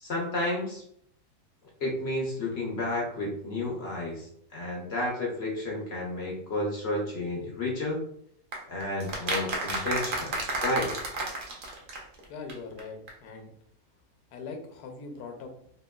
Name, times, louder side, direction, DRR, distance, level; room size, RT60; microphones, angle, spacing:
voice 1, 0.0-0.8 1.8-8.0 8.7-10.4 10.6-10.9, left 1 dB, 60° left, -2 dB, 0.7 m, -31 dB
sound 1, 8.5-12.2 12.5-12.6 12.8-12.9 13.1-13.2, right 2 dB, 70° right, 0.5 m, -32 dB
voice 2, 12.3-13.5 14.3-15.5, left 4 dB, 80° left, 4 dB, 1.1 m, -41 dB
2.9 x 2.8 x 2.2 m, 0.66 s
omnidirectional pair, 1.7 m